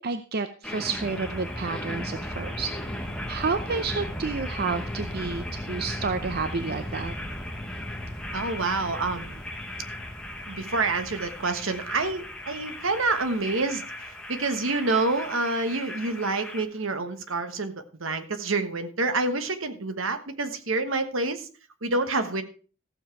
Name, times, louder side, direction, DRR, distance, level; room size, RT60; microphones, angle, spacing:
voice 1, 0.0-2.7 3.3-7.1, right 4 dB, 50° right, 10 dB, 0.6 m, -30 dB
sound 1, 0.6-16.6, left 1 dB, 5° left, 1.4 m, -36 dB
voice 2, 8.3-9.4 10.5-13.8 14.3-17.7 18.0-21.5 21.8-22.4, right 3 dB, 70° right, 9 dB, 1.3 m, -27 dB
14.5 x 7.3 x 4.7 m, 0.38 s
head